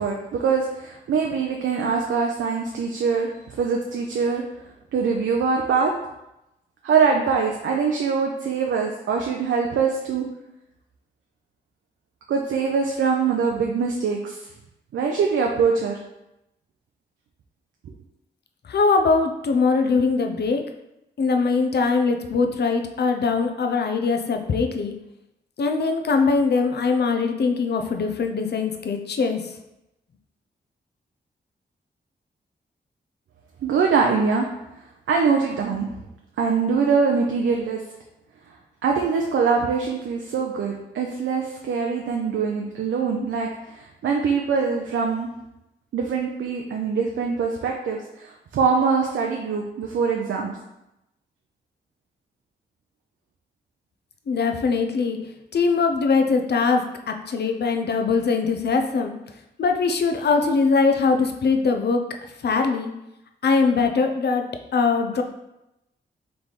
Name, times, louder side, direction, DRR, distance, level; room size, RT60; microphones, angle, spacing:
voice 1, 0.0-4.4 4.9-5.9 6.8-10.2 12.3-14.5 14.9-16.0 33.6-34.5 35.1-35.9 36.4-37.8 38.8-45.3 45.9-50.6, right 5 dB, 75° right, 0 dB, 0.5 m, -23 dB
voice 2, 18.7-20.6 21.2-24.9 25.6-29.5 54.3-55.2 55.5-59.1 59.6-62.0 62.4-62.9 63.4-64.5 64.7-65.2, left 4 dB, 60° left, 5 dB, 0.6 m, -21 dB
3.4 x 3.3 x 4.0 m, 0.89 s
supercardioid pair, 45°, 20 cm